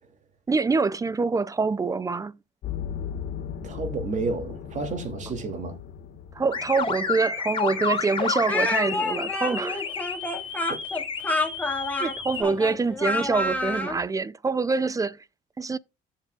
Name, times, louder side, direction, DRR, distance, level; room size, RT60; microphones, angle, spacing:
voice 1, 0.5-2.4 6.3-9.8 12.0-15.2 15.6-15.8, right 4 dB, 20° right, 0.5 m, -25 dB
sound 1, 2.6-6.8 7.1-7.2, left 8 dB, 70° left, 1.7 m, -36 dB
voice 2, 3.6-5.8 10.7-10.8, right 3 dB, 45° right, 2.7 m, -31 dB
sound 2, 6.5-12.4, left 5 dB, 30° left, 3.0 m, -31 dB
Speech, 8.5-14.0, left 2 dB, 10° left, 2.3 m, -28 dB
13.5 x 7.5 x 2.4 m
cardioid pair, 110°, 17 cm